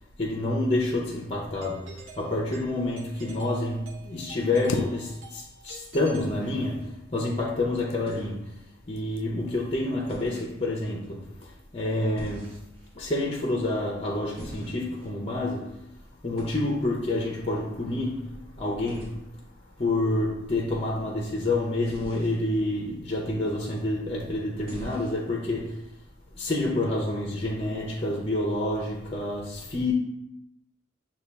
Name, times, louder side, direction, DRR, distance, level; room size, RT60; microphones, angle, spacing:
voice 1, 0.2-8.6 8.9-12.5 12.9-15.8 16.2-19.2 19.8-25.8 26.3-29.9, left 2 dB, 30° left, 0.5 m, -28 dB
Doorbell, 1.6-7.0, right 3 dB, 75° right, 0.8 m, -48 dB
sound 1, 4.5-5.6 5.9-6.6 7.5-8.3 9.0-9.3 9.7-10.0, left 4 dB, 85° left, 0.4 m, -36 dB
sound 2, 6.2-6.8 8.0-8.4 10.1-10.5 12.2-12.9 14.4-15.1 16.4-16.7 18.9-19.1 21.9-22.4 24.6-25.2, equal, 30° right, 1.4 m, -42 dB
6.9 x 2.3 x 3.3 m
head